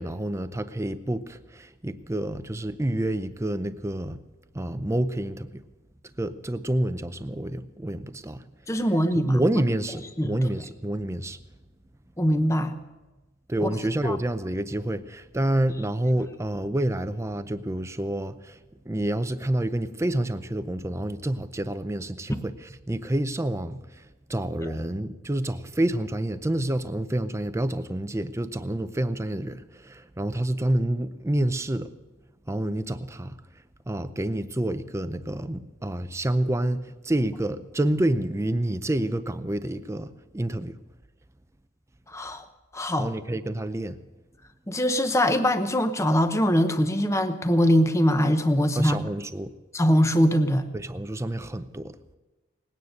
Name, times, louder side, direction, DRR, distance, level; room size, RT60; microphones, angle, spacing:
voice 1, 0.0-4.2 4.5-5.6 6.2-8.4 9.3-11.4 13.5-18.6 18.9-24.0 24.3-31.9 32.5-33.3 33.9-40.8 43.0-44.0 48.8-49.5 50.7-51.9, right 1 dB, 15° right, 12 dB, 0.5 m, -28 dB
voice 2, 8.7-9.4 10.2-10.4 12.2-12.7 13.6-13.7 14.0-14.2 24.6-24.7 42.1-42.4 42.7-43.1 44.7-49.0 49.7-50.6, equal, 15° left, 8 dB, 0.8 m, -22 dB
19.5 x 9.5 x 6.5 m, 1.1 s
head